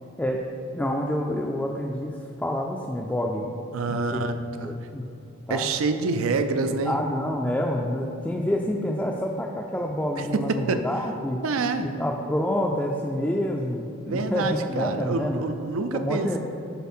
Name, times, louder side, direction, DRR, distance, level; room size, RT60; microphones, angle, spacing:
voice 1, 0.7-3.5 3.9-4.2 4.6-5.1 5.5-5.7 6.9-11.4 11.8-15.4 15.9-16.4, left 1 dB, 5° left, -1 dB, 0.3 m, -28 dB
voice 2, 3.7-4.7 5.5-7.0 10.2-10.9 11.4-11.8 14.1-16.4, right 3 dB, 85° right, 8 dB, 0.4 m, -27 dB
7.0 x 4.0 x 4.3 m, 2.6 s
head